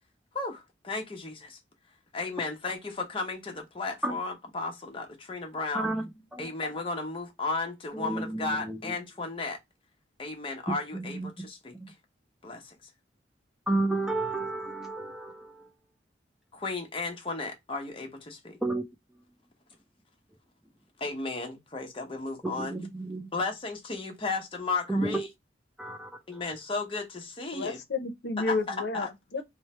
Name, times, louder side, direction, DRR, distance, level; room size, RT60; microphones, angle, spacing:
voice 1, 0.3-1.6 2.1-5.9 6.4-9.6 10.2-11.9 12.4-12.8 16.5-18.6 21.0-22.8 23.3-25.3 26.3-27.8 28.4-29.1, left 3 dB, 30° left, 0.8 m, -34 dB
voice 2, 5.7-6.0 6.3-6.5 7.9-8.9 10.9-11.5 11.7-11.9 13.7-15.7 18.6-18.8 22.4-23.3 24.9-25.3 25.8-26.4, right 2 dB, 5° right, 0.3 m, -32 dB
voice 3, 27.5-29.4, left 3 dB, 75° left, 0.7 m, -31 dB
3.1 x 2.1 x 4.1 m
head